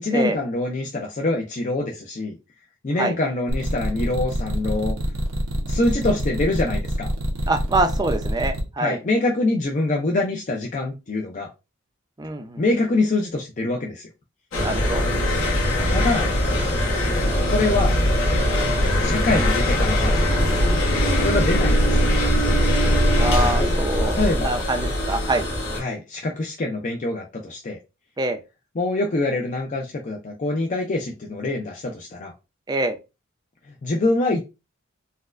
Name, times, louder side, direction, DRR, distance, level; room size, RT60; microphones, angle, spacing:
voice 1, 0.0-2.3 2.8-5.0 5.7-7.1 8.8-11.5 12.6-14.1 15.9-16.3 17.5-17.9 19.0-20.1 21.2-22.1 24.0-24.6 25.8-27.8 28.8-32.3 33.8-34.4, left 2 dB, 40° left, 1 dB, 0.5 m, -24 dB
sound 1, 3.5-8.6, equal, 90° right, 0.9 m, -25 dB
voice 2, 7.5-9.0 12.2-12.6 14.6-15.0 23.2-25.5 28.2-28.4 32.7-33.0, right 2 dB, 20° right, 6 dB, 0.4 m, -25 dB
sound 2, 14.5-25.8, equal, 70° left, 1.2 m, -21 dB
4.1 x 2.1 x 2.5 m, 0.27 s
head